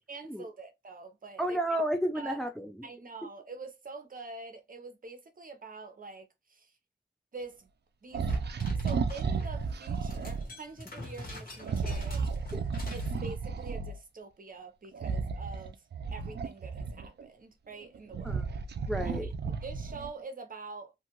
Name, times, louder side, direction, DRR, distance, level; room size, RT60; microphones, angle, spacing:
voice 1, 0.0-1.6 2.1-2.4 2.8-6.7 7.3-7.7 8.0-8.3 8.8-12.2 12.9-15.8 16.1-18.4 19.2-20.9, right 3 dB, 50° right, 0.8 m, -45 dB
voice 2, 1.4-2.7 12.5-12.6 18.2-18.4 18.9-19.3, equal, ahead, 0.4 m, -31 dB
sound 1, 8.1-10.5 11.6-14.0 14.9-17.2 17.8-20.2, right 5 dB, 65° right, 0.4 m, -33 dB
sound 2, 8.3-9.5 9.9-13.2, left 2 dB, 50° left, 1.4 m, -46 dB
2.6 x 2.4 x 2.9 m
cardioid pair, 65°, 18 cm